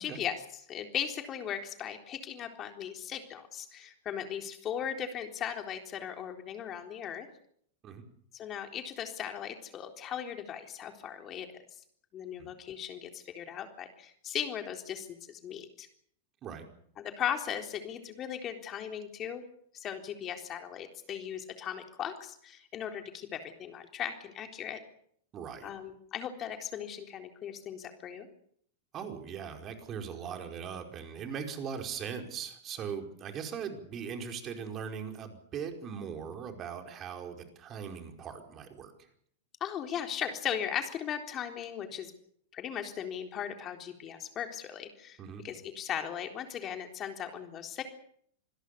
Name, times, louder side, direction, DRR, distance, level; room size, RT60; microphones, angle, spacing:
voice 1, 0.0-7.3 8.3-11.5 12.1-15.9 17.0-19.4 19.7-24.8 25.6-28.3 39.6-42.1 42.5-45.2 45.4-47.8, left 9 dB, 35° left, 5 dB, 3.8 m, -38 dB
voice 2, 25.3-25.7 28.9-38.9 45.2-45.4, right 7 dB, 35° right, 4 dB, 4.9 m, -40 dB
27.0 x 21.0 x 6.9 m, 0.66 s
hypercardioid pair, 100°, 0 cm